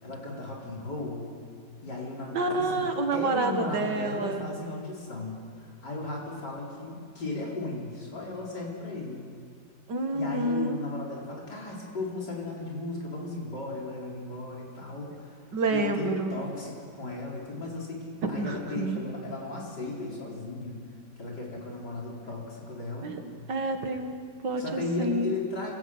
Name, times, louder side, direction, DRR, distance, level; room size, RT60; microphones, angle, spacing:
voice 1, 0.0-1.3 1.8-9.3 10.1-20.8 21.2-23.2 24.5-25.7, left 2 dB, 75° left, -3 dB, 5.1 m, -36 dB
voice 2, 2.3-4.5 9.9-10.8 15.5-16.4 18.2-19.0 23.0-23.2 23.5-25.4, right 2 dB, 85° right, 5 dB, 2.4 m, -29 dB
25.0 x 16.5 x 8.0 m, 2.2 s
omnidirectional pair, 1.8 m